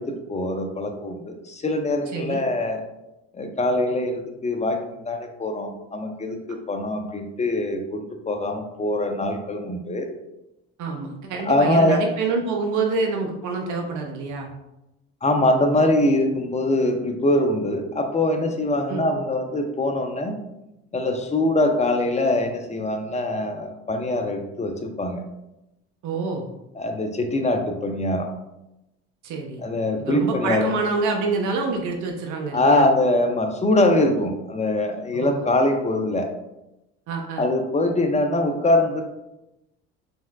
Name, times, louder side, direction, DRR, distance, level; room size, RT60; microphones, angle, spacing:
voice 1, 0.0-2.8 3.3-10.1 11.5-12.0 15.2-20.4 20.9-25.2 26.7-28.3 29.6-30.7 32.5-36.3 37.4-39.0, left 1 dB, 20° left, 5 dB, 0.7 m, -23 dB
voice 2, 10.8-14.5 18.9-19.1 26.0-26.5 29.2-29.6 30.0-32.9 35.1-35.4 37.1-37.5, right 4 dB, 60° right, 2 dB, 0.7 m, -27 dB
5.3 x 3.5 x 2.3 m, 0.92 s
hypercardioid pair, 65°, 33 cm